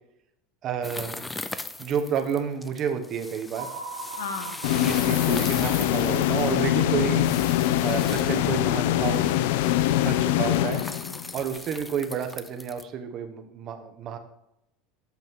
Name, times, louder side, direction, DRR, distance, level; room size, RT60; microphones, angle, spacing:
voice 1, 0.6-1.2 1.8-3.7 4.8-7.3 7.8-9.3 10.0-10.8 11.3-14.2, right 7 dB, 40° right, 7 dB, 1.1 m, -30 dB
sound 1, 0.8-12.8, left 2 dB, 10° left, 0.5 m, -40 dB
sound 2, 3.5-7.8, right 4 dB, 85° right, 1.3 m, -41 dB
voice 2, 4.1-4.8 10.3-11.4, left 6 dB, 90° left, 8 dB, 1.1 m, -39 dB
sound 3, 4.6-11.4, left 13 dB, 75° left, 0.4 m, -23 dB
8.3 x 6.0 x 3.7 m, 0.83 s
supercardioid pair, 120°, 0 cm